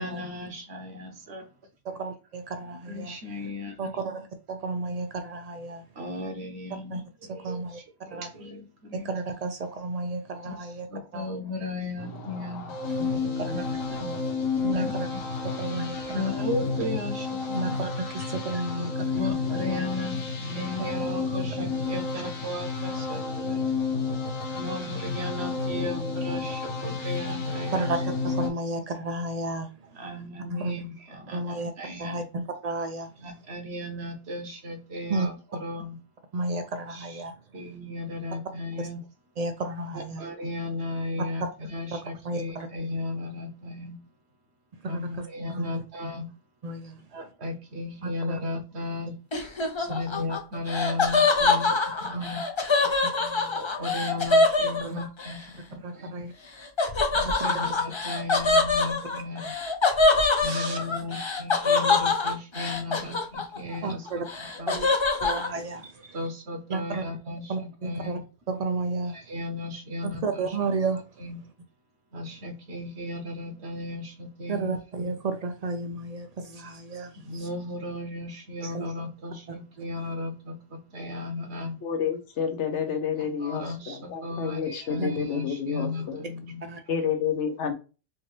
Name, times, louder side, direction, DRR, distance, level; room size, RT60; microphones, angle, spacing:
voice 1, 0.0-1.5 2.9-3.9 6.0-9.1 10.4-10.6 10.9-12.7 13.4-14.1 14.7-15.2 16.1-17.6 19.1-23.6 24.5-27.8 30.0-32.2 33.2-35.3 35.6-36.0 36.9-37.2 37.5-39.0 40.0-44.0 44.8-46.3 47.1-49.2 49.9-52.4 53.5-56.1 57.1-59.4 60.4-64.7 66.1-68.2 69.1-70.5 71.2-71.4 72.1-75.1 77.2-81.8 83.4-86.7, left 2 dB, 60° right, 1.0 m, -35 dB
voice 2, 1.8-3.2 3.8-5.8 6.9-7.8 8.1-8.3 8.9-10.9 11.1-11.3 13.0-13.8 14.6-15.1 15.5-16.4 17.5-19.5 21.6-21.7 27.7-30.1 30.5-30.7 31.3-31.7 32.0-33.1 35.1-35.3 36.3-37.3 39.4-40.3 41.4-41.5 42.2-42.7 44.8-45.8 46.6-47.0 48.0-48.4 49.8-50.3 52.1-52.4 52.8-53.6 54.8-55.0 55.8-56.3 57.2-57.8 60.4-60.8 63.8-64.3 64.7-64.9 65.2-66.2 66.7-67.0 67.5-68.2 68.5-69.2 70.0-71.3 74.5-77.5 78.6-78.9 79.5-79.8 85.0-85.1 86.6-86.8, right 3 dB, 80° right, 0.3 m, -33 dB
sound 1, 12.0-28.5, left 4 dB, 85° left, 1.3 m, -31 dB
Laughter, 49.3-55.4 56.8-63.8 64.1-65.5, left 3 dB, 35° left, 0.5 m, -24 dB
voice 3, 81.8-86.2 86.9-87.7, left 7 dB, 65° left, 1.0 m, -29 dB
4.5 x 2.6 x 3.2 m
omnidirectional pair, 1.3 m